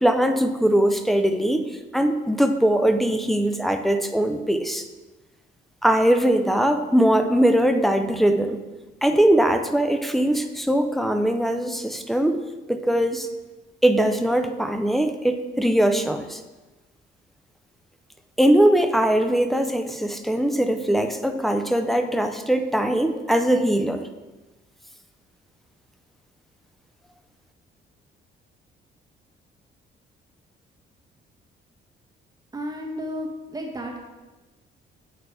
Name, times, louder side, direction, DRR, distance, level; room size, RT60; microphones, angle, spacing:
voice 1, 0.0-1.6 1.9-4.8 5.8-8.6 9.0-12.4 12.7-13.3 13.8-16.4 18.4-24.0, right 1 dB, ahead, 5 dB, 0.5 m, -21 dB
voice 2, 32.5-34.0, equal, 20° right, -1 dB, 1.4 m, -32 dB
8.1 x 4.2 x 3.4 m, 1.2 s
cardioid pair, 90°, 20 cm